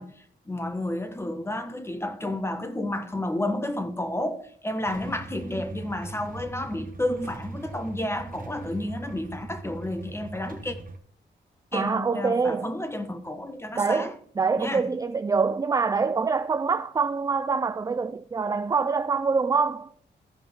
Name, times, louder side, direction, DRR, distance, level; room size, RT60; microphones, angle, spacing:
voice 1, 0.0-10.8 11.7-14.2 14.6-14.9, left 1 dB, 15° left, 1.3 m, -31 dB
Motorcycle / Engine starting / Idling, 4.8-11.0, right 3 dB, 50° right, 1.3 m, -41 dB
voice 2, 11.7-12.7 13.8-19.9, right 5 dB, 20° right, 0.3 m, -25 dB
14.5 x 5.2 x 3.6 m
cardioid pair, 75°, 19 cm